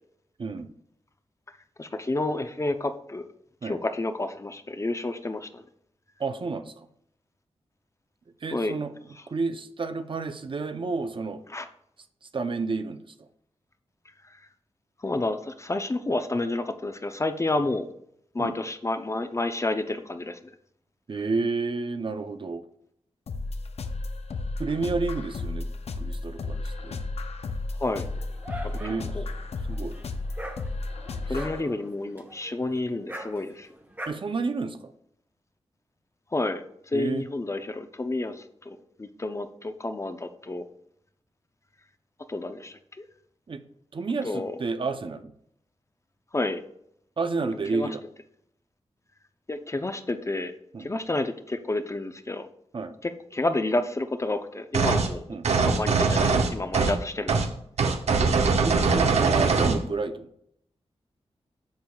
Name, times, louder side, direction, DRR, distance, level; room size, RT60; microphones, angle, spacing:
voice 1, 0.4-0.7 3.6-3.8 6.2-6.9 8.4-8.9 9.3-11.4 12.3-13.1 18.4-18.5 21.1-22.6 24.6-25.7 26.0-27.1 28.7-29.2 29.7-30.0 31.3-31.5 34.1-34.9 36.9-37.2 43.5-43.6 43.9-45.3 47.2-48.0 50.7-50.9 52.7-52.9 55.3-55.5 58.1-60.3, right 4 dB, 50° right, 8 dB, 0.6 m, -31 dB
voice 2, 1.8-3.2 3.6-5.6 8.5-8.8 11.5-11.7 14.3-14.4 15.0-17.9 18.3-20.4 27.8-28.1 28.6-29.3 31.3-33.7 36.3-40.6 42.3-43.1 44.2-44.6 46.3-46.6 47.7-47.9 49.5-50.5 50.8-52.5 53.0-55.2 55.6-57.5, left 2 dB, 25° left, 8 dB, 0.6 m, -30 dB
sound 1, 23.3-31.6, left 3 dB, 75° left, 0.6 m, -33 dB
Dog, 28.0-34.1, right 1 dB, 15° right, 1.1 m, -42 dB
sound 2, 54.7-55.1 55.4-57.0 57.3-57.5 57.8-59.8, right 4 dB, 90° right, 0.8 m, -22 dB
10.5 x 7.1 x 2.3 m, 0.71 s
wide cardioid pair, 85°, 11 cm